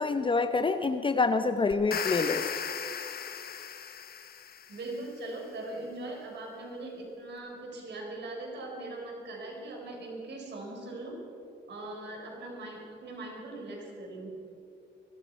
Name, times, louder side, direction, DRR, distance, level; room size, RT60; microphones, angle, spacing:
voice 1, 0.0-2.5, left 4 dB, 25° left, 9 dB, 0.6 m, -27 dB
sound 1, 1.7-4.9, left 8 dB, 50° left, 1.0 m, -36 dB
voice 2, 4.7-11.2 11.7-14.4, right 2 dB, 60° right, 0 dB, 4.5 m, -40 dB
21.5 x 13.5 x 4.6 m, 2.7 s
cardioid pair, 90°, 20 cm